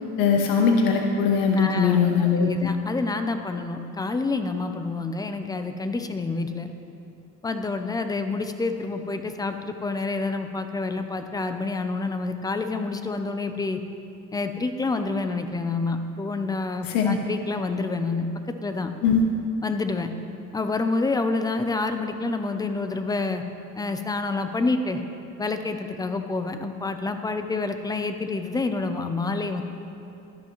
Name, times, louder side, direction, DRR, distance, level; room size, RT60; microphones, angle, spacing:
voice 1, 0.2-2.7 16.9-17.2 19.0-19.2, left 5 dB, 85° left, 2 dB, 0.8 m, -20 dB
voice 2, 1.6-6.7 7.4-13.8 14.3-18.9 19.6-20.1 20.5-23.4 23.8-25.0 25.4-29.6, left 3 dB, 10° left, 7 dB, 0.4 m, -28 dB
12.5 x 11.0 x 3.0 m, 2.8 s
cardioid pair, 140°, 33 cm